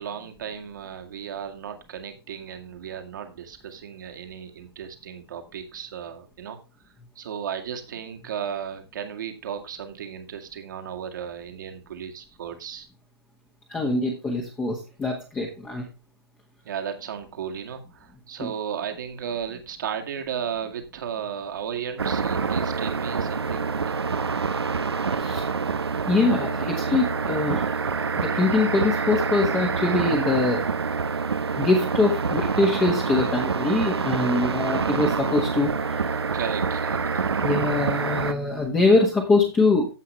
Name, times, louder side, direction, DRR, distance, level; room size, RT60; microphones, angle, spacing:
voice 1, 0.0-6.6 7.2-12.9 16.6-23.9 36.3-37.3, right 8 dB, 50° right, 5 dB, 2.0 m, -35 dB
voice 2, 13.7-15.8 18.4-18.5 25.2-25.4 26.1-27.7 28.2-30.7 31.6-36.1 37.4-39.9, left 3 dB, 10° left, 0 dB, 1.5 m, -23 dB
sound 1, 22.0-38.3, right 5 dB, 75° right, 1.0 m, -26 dB
15.5 x 5.5 x 3.3 m, 0.30 s
figure-of-eight pair, 135°, 13 cm